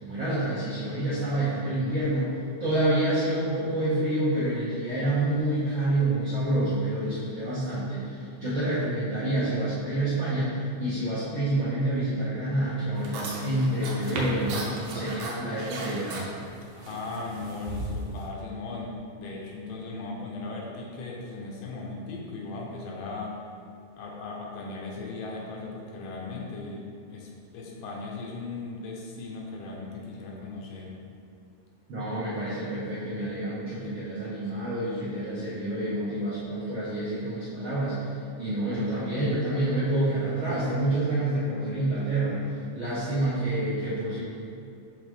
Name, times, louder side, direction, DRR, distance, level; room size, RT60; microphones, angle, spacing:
voice 1, 0.0-2.3 2.6-16.2 31.9-38.1 38.4-42.4 42.7-44.2, right 1 dB, 70° right, -11 dB, 1.2 m, -28 dB
sound 1, 13.0-18.3, right 2 dB, 90° right, 2.4 m, -36 dB
voice 2, 16.8-23.4 24.0-31.0, left 3 dB, 80° left, -2 dB, 2.5 m, -37 dB
7.8 x 3.6 x 3.5 m, 2.5 s
omnidirectional pair, 3.8 m